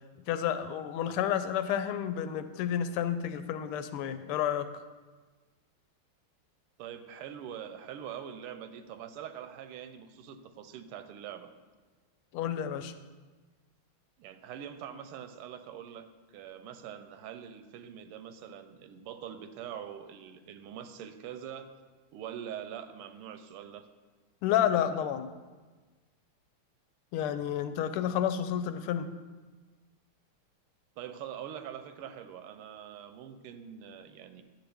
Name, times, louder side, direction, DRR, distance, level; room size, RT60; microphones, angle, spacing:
voice 1, 0.3-4.7 12.3-12.9 24.4-25.3 27.1-29.1, left 10 dB, 80° left, 11 dB, 1.5 m, -30 dB
voice 2, 6.8-11.5 14.2-16.1 16.3-21.7 22.1-23.9 31.0-34.4, right 9 dB, 90° right, 10 dB, 1.5 m, -43 dB
10.5 x 8.2 x 3.4 m, 1.3 s
omnidirectional pair, 2.4 m